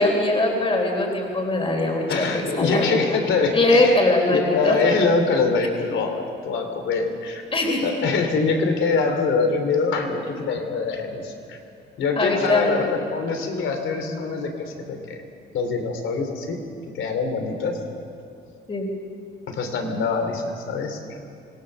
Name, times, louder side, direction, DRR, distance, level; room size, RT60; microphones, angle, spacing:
voice 1, 0.0-3.2 3.5-5.0 7.5-7.8 12.2-12.8 18.7-18.9, left 2 dB, 30° left, 1 dB, 3.7 m, -21 dB
voice 2, 2.1-3.9 4.3-7.4 7.8-11.6 12.0-15.2 15.5-16.6 16.9-17.8 19.5-21.0, left 4 dB, 75° left, 5 dB, 3.3 m, -24 dB
25.0 x 18.5 x 6.8 m, 2.5 s
cardioid pair, 90°, 20 cm